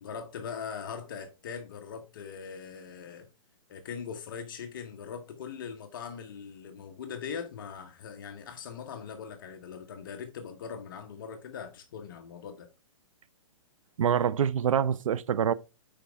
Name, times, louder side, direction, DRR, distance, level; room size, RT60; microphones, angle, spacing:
voice 1, 0.0-3.3 3.7-12.7, left 6 dB, 40° left, 1.0 m, -41 dB
voice 2, 14.0-15.5, right 8 dB, 75° right, 0.6 m, -25 dB
8.7 x 5.2 x 3.4 m
hypercardioid pair, 170°, 17 cm